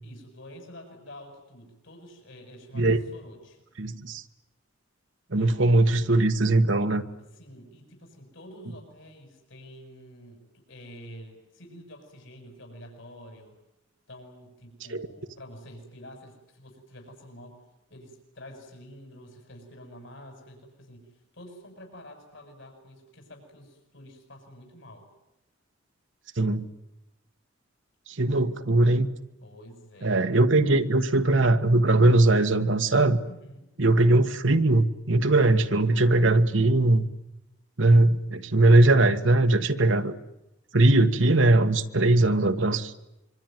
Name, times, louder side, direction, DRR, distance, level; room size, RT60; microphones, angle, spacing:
voice 1, 0.0-3.6 5.3-5.9 7.2-13.6 14.1-17.6 17.9-25.1 29.4-30.2 33.2-33.7 39.5-40.0, equal, 65° left, 3 dB, 7.3 m, -48 dB
voice 2, 3.8-4.2 5.3-7.0 14.9-15.1 26.4-26.6 28.2-29.1 30.0-33.2 33.8-37.1 37.8-40.1 40.7-42.9, right 2 dB, 65° right, 7 dB, 1.5 m, -20 dB
25.5 x 24.5 x 9.3 m, 0.90 s
head